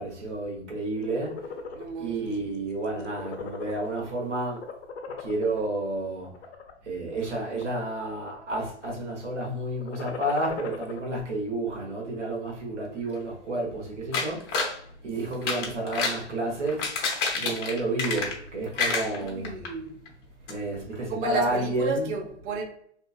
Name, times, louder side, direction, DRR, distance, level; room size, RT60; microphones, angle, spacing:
voice 1, 0.0-1.4 2.0-4.6 5.2-6.3 6.8-16.9 17.3-19.6 20.5-22.2, right 2 dB, 85° right, 1.2 m, -31 dB
sound 1, 0.9-1.9 2.3-2.6 2.9-4.1 4.5-5.6 6.2-6.7 7.3-8.1 8.3-8.9 9.7-11.0, left 5 dB, 65° left, 0.7 m, -38 dB
voice 2, 1.7-2.5 2.9-3.1 19.2-20.0 21.1-22.6, right 4 dB, 20° right, 0.4 m, -33 dB
sound 2, 14.1-14.8 15.3-16.2 16.7-18.5 18.8-19.7 20.1-20.2 20.5-20.6, left 4 dB, 30° left, 0.8 m, -28 dB
2.8 x 2.7 x 2.3 m
hypercardioid pair, 110°, 35 cm